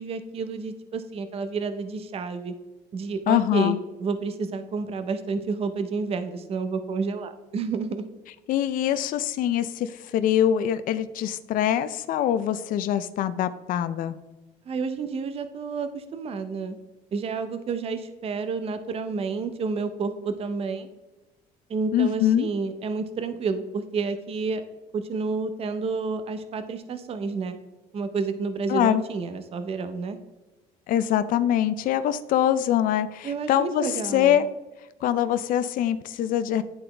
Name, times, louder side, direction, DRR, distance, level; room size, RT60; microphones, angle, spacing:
voice 1, 0.0-2.5 2.9-8.0 14.7-16.8 17.1-20.9 21.7-24.6 24.9-27.6 27.9-30.2 33.2-34.4, right 4 dB, 35° right, 9 dB, 0.6 m, -30 dB
voice 2, 3.3-3.8 8.5-14.2 21.9-22.5 28.7-29.0 30.9-34.5 35.0-36.6, left 10 dB, 60° left, 12 dB, 0.4 m, -24 dB
10.5 x 3.9 x 3.3 m, 1.1 s
cardioid pair, 115°, 16 cm